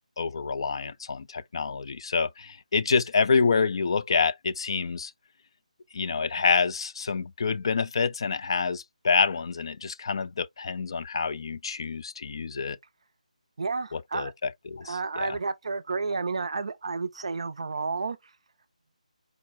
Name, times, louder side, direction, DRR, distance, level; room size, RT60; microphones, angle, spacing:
voice 1, 0.2-5.1 5.9-12.8 13.9-15.4, left 5 dB, 40° left, 0.3 m, -27 dB
voice 2, 13.6-14.3 14.8-18.2, right 4 dB, 50° right, 0.4 m, -31 dB
4.7 x 2.0 x 3.4 m
figure-of-eight pair, 155°, 4 cm